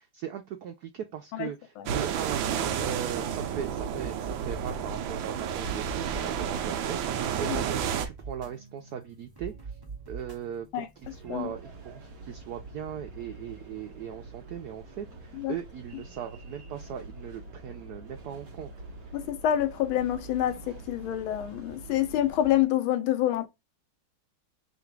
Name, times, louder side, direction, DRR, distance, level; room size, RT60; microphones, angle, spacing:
voice 1, 0.0-2.4 2.7-9.5 10.1-18.7, right 9 dB, 90° right, 0.8 m, -39 dB
sound 1, 1.9-8.1, right 8 dB, 75° right, 1.3 m, -31 dB
sound 2, 2.6-15.2, right 5 dB, 15° right, 0.8 m, -45 dB
sound 3, 11.0-22.7, right 2 dB, 50° right, 1.3 m, -46 dB
voice 2, 19.1-23.5, left 12 dB, 75° left, 1.4 m, -27 dB
3.9 x 2.5 x 4.5 m
omnidirectional pair, 2.3 m